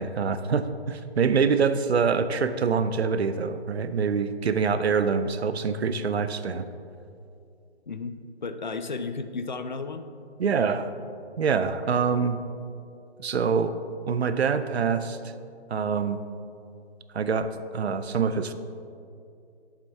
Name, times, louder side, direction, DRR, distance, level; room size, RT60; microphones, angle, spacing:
voice 1, 0.0-6.6 10.4-10.9 11.4-12.4 13.2-13.8 14.1-15.2 15.7-16.2 17.1-18.5, right 5 dB, 70° right, 11 dB, 0.6 m, -25 dB
voice 2, 7.9-10.1, left 4 dB, 45° left, 10 dB, 0.4 m, -34 dB
9.0 x 7.3 x 3.4 m, 2.5 s
hypercardioid pair, 170°, 33 cm